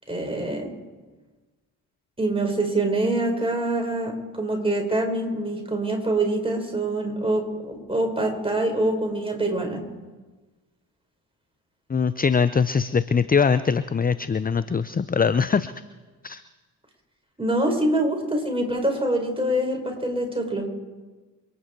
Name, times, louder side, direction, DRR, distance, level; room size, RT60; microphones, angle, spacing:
voice 1, 0.1-0.7 2.2-9.8 17.4-20.7, right 1 dB, 10° right, 2 dB, 5.2 m, -25 dB
voice 2, 11.9-15.7 16.2-16.4, left 6 dB, 20° left, 15 dB, 0.6 m, -22 dB
28.0 x 9.6 x 4.7 m, 1.3 s
hypercardioid pair, 45°, 48 cm